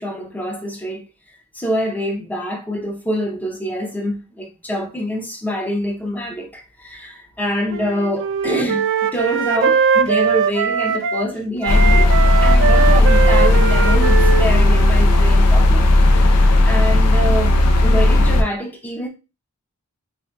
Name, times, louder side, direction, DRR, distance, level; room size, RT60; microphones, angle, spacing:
voice 1, 0.0-12.1 12.4-15.9 16.1-17.6 17.8-19.1, equal, 5° left, 0.5 m, -26 dB
Wind instrument woodwind instrument, 7.7-11.3 11.6-15.4, right 6 dB, 55° right, 0.3 m, -20 dB
sound 1, 11.7-18.4, left 1 dB, 85° left, 0.5 m, -13 dB
3.5 x 2.6 x 2.2 m
head